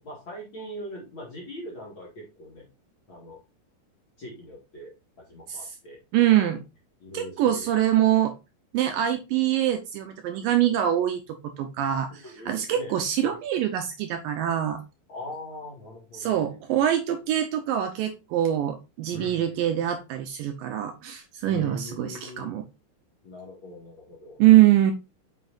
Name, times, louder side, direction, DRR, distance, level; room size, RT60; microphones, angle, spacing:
voice 1, 0.0-2.7 3.1-3.4 4.2-6.0 7.0-7.8 8.0-8.2 12.1-13.0 13.2-13.4 15.1-16.6 19.1-19.6 21.4-22.6 23.2-24.4, left 1 dB, 40° left, -3 dB, 2.0 m, -42 dB
voice 2, 6.1-6.6 7.1-8.3 8.7-14.8 16.1-22.6 24.4-24.9, right 12 dB, 80° right, 7 dB, 2.1 m, -24 dB
7.3 x 5.7 x 2.5 m, 0.26 s
omnidirectional pair, 4.4 m